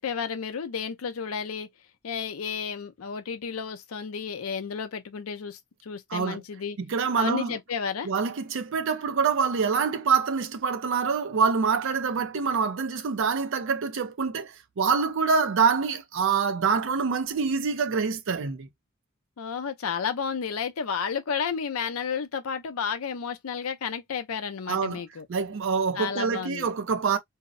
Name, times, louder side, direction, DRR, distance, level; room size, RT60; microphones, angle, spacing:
voice 1, 0.0-1.7 2.0-6.8 7.2-8.1 19.4-25.3 26.0-26.7, left 6 dB, 85° left, 0.5 m, -32 dB
voice 2, 6.1-6.4 6.8-7.6 8.0-18.7 24.7-25.0 25.3-27.2, right 5 dB, 65° right, 0.5 m, -26 dB
2.7 x 2.0 x 2.4 m
head